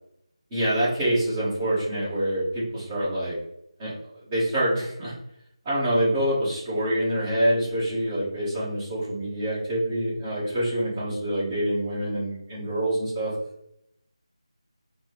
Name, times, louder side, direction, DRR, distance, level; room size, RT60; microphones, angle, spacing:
voice 1, 0.5-3.3 3.8-3.9 4.3-5.2 5.6-13.3, right 1 dB, 15° right, -11 dB, 1.4 m, -26 dB
4.1 x 2.2 x 3.2 m, 0.77 s
figure-of-eight pair, 160°, 3 cm